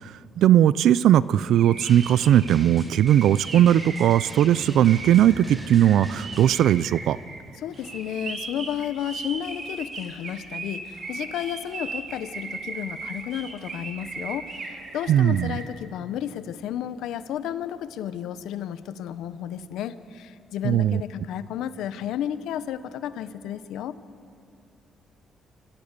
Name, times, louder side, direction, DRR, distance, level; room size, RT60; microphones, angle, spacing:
voice 1, 0.0-7.2 15.1-15.6 20.6-21.0, right 11 dB, 80° right, 19 dB, 0.5 m, -19 dB
sound 1, 1.4-15.7, right 3 dB, 50° right, 4.0 m, -37 dB
Drum, 1.9-6.6, right 1 dB, 10° right, 4.2 m, -42 dB
voice 2, 7.6-24.0, left 10 dB, 85° left, 14 dB, 0.9 m, -32 dB
26.5 x 16.0 x 8.3 m, 2.4 s
cardioid pair, 90°, 0 cm